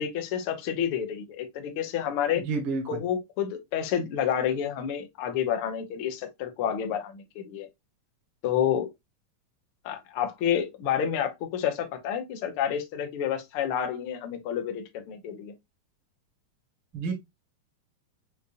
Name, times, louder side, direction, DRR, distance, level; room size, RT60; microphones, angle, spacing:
voice 1, 0.0-2.4 2.9-7.7 8.4-8.9 9.8-15.5, left 9 dB, 80° left, 1.2 m, -29 dB
voice 2, 2.4-3.0 16.9-17.1, right 4 dB, 50° right, 1.6 m, -29 dB
6.6 x 2.6 x 2.5 m
omnidirectional pair, 3.8 m